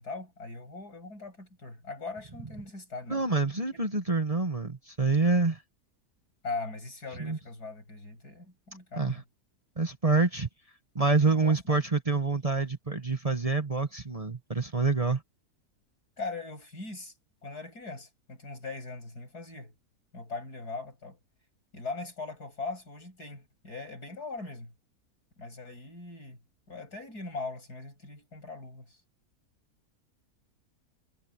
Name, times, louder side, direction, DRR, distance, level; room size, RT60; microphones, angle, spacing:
voice 1, 0.0-3.2 6.4-9.2 11.2-11.8 16.2-17.1 17.4-19.8 20.1-21.2 21.7-24.7 25.4-26.4 26.7-29.0, left 3 dB, 85° left, 8.0 m, -40 dB
voice 2, 3.1-5.6 7.2-7.4 9.0-9.2 9.8-10.5 10.9-15.2, right 3 dB, 25° right, 1.5 m, -27 dB
omnidirectional pair, 1.6 m